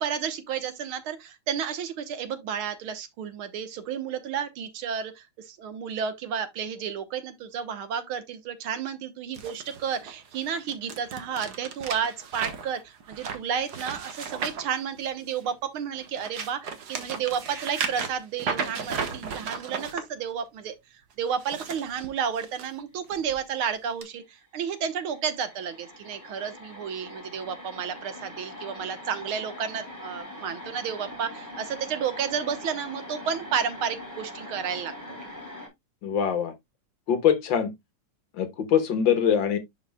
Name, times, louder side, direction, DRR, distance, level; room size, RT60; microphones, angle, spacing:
voice 1, 0.0-20.8 21.2-35.2, right 7 dB, 75° right, 1.9 m, -32 dB
sound 1, 9.3-15.5 15.9-20.0 21.3-22.7 23.1-23.4 24.0-24.1, right 5 dB, 55° right, 1.6 m, -35 dB
sound 2, 24.4-24.5 24.7-35.7, left 1 dB, 10° left, 3.3 m, -42 dB
voice 2, 36.0-36.5 37.1-37.7 38.3-39.6, left 8 dB, 65° left, 1.8 m, -23 dB
11.0 x 4.8 x 2.2 m
omnidirectional pair, 2.4 m